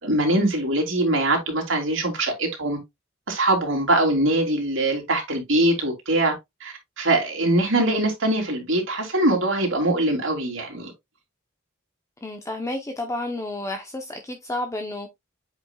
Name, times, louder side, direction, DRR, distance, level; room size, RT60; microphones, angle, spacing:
voice 1, 0.0-2.8 3.3-6.3 6.6-10.9, right 1 dB, 70° right, 2.9 m, -22 dB
voice 2, 12.2-15.1, left 2 dB, 15° left, 0.8 m, -31 dB
8.0 x 5.1 x 2.3 m
head